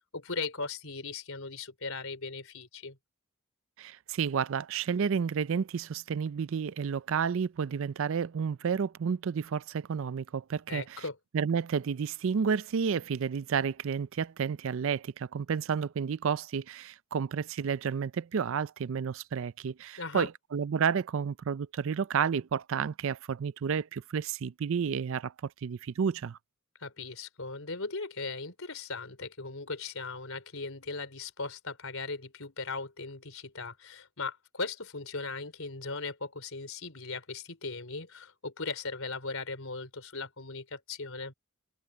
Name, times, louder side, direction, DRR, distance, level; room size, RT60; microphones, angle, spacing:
voice 1, 0.1-3.0 10.7-11.2 20.0-20.3 26.8-41.3, left 3 dB, 65° left, 4.4 m, -38 dB
voice 2, 3.8-11.0 11.3-26.4, right 6 dB, 60° right, 0.4 m, -31 dB
head